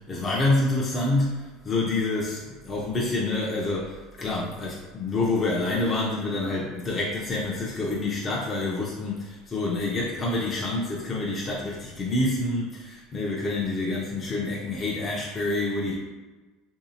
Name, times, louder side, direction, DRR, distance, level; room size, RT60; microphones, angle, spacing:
voice 1, 0.1-15.9, left 2 dB, 30° left, -4 dB, 0.6 m, -27 dB
3.3 x 2.7 x 2.8 m, 1.3 s
supercardioid pair, 90°, 0 cm